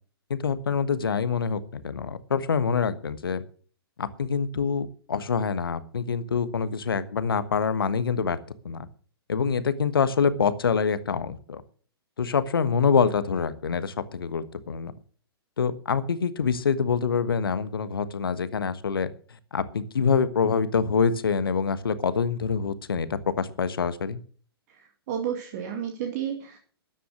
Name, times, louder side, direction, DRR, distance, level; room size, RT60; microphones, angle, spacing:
voice 1, 0.3-3.4 4.0-8.4 8.6-8.9 9.3-11.6 12.2-14.9 15.6-19.1 19.5-24.2, left 6 dB, 65° left, 13 dB, 1.3 m, -25 dB
voice 2, 25.1-26.6, right 9 dB, 40° right, 3 dB, 2.3 m, -31 dB
13.5 x 10.0 x 6.3 m, 0.43 s
figure-of-eight pair, 115°, 13 cm